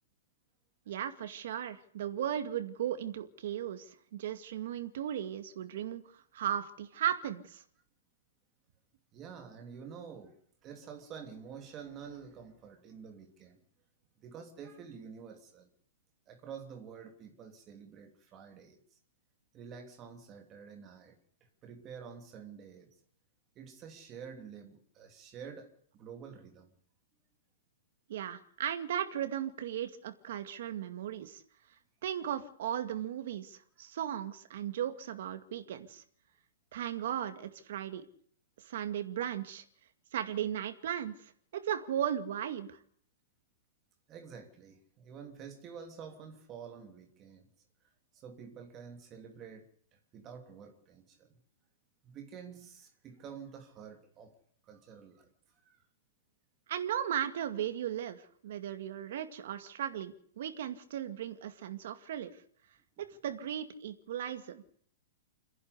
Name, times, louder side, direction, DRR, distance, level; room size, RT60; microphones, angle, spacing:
voice 1, 0.9-6.0 6.3-7.6 28.1-31.4 32.0-36.0 36.7-38.1 38.6-39.6 40.1-42.8 56.7-62.3 63.0-64.6, right 10 dB, 55° right, 2.2 m, -36 dB
voice 2, 9.1-10.4 10.6-13.6 14.2-15.7 16.3-19.0 19.5-21.2 21.6-23.0 23.5-26.7 44.1-47.5 47.8-51.4 52.0-54.3 54.6-55.3 55.6-55.8, right 7 dB, 20° right, 3.0 m, -49 dB
29.0 x 11.0 x 8.3 m
hypercardioid pair, 165°, 0 cm